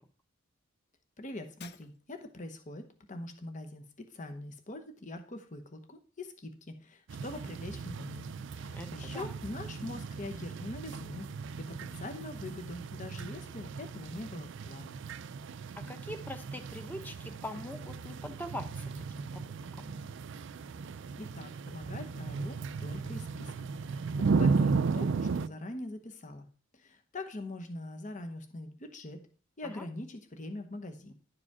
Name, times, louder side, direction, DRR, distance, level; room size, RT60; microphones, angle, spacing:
voice 1, 1.2-8.3 8.5-11.3 11.6-15.0 21.2-26.5 26.7-29.3 29.6-31.1, left 2 dB, 40° left, 6 dB, 0.9 m, -43 dB
Shatter, 1.6-2.4, left 9 dB, 55° left, 0.5 m, -53 dB
sound 1, 7.1-25.5, right 4 dB, 65° right, 0.4 m, -35 dB
voice 2, 8.7-9.4 15.9-19.4 19.8-19.9 29.6-29.9, left 1 dB, 10° left, 7 dB, 1.0 m, -43 dB
11.0 x 4.9 x 4.8 m, 0.40 s
head